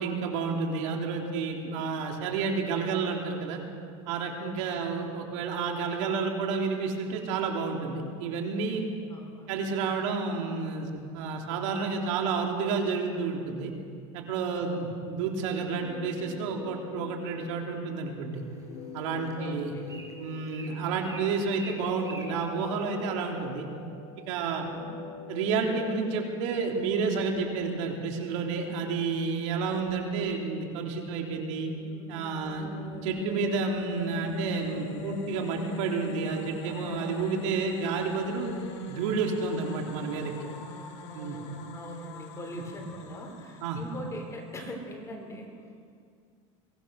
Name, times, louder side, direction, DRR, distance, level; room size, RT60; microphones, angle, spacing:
voice 1, 0.0-3.6 4.1-8.8 9.5-13.7 14.1-18.4 18.9-19.7 20.2-23.7 24.3-24.7 25.3-31.7 32.1-32.7 33.0-38.5 38.9-40.3 41.1-41.4 42.5-42.6 43.6-43.8, right 4 dB, 75° right, 1 dB, 3.4 m, -30 dB
voice 2, 9.0-9.8 14.5-14.9 19.4-19.8 24.6-24.9 32.6-32.7 41.0-45.5, equal, 20° left, 2 dB, 4.2 m, -42 dB
sound 1, 15.8-27.8, left 5 dB, 45° left, 1.7 m, -45 dB
Bird, 18.3-23.5, right 2 dB, 20° right, 5.2 m, -49 dB
sound 2, 31.5-44.7, left 3 dB, 70° left, 3.2 m, -41 dB
23.0 x 18.0 x 6.5 m, 2.2 s
supercardioid pair, 130°, 16 cm